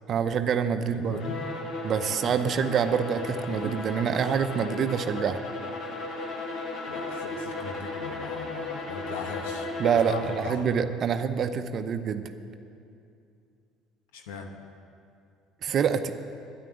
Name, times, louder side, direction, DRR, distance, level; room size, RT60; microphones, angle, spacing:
voice 1, 0.1-1.2 1.8-5.4 9.8-12.3 15.6-16.1, right 7 dB, 50° right, 9 dB, 0.7 m, -26 dB
voice 2, 0.7-1.4 2.1-2.4 6.9-9.7 9.9-10.7 14.1-14.5, left 4 dB, 85° left, 4 dB, 1.2 m, -39 dB
Bowed string instrument, 1.1-10.6, left 3 dB, 60° left, 2.1 m, -35 dB
10.5 x 9.1 x 9.0 m, 2.5 s
hypercardioid pair, 75°, 0 cm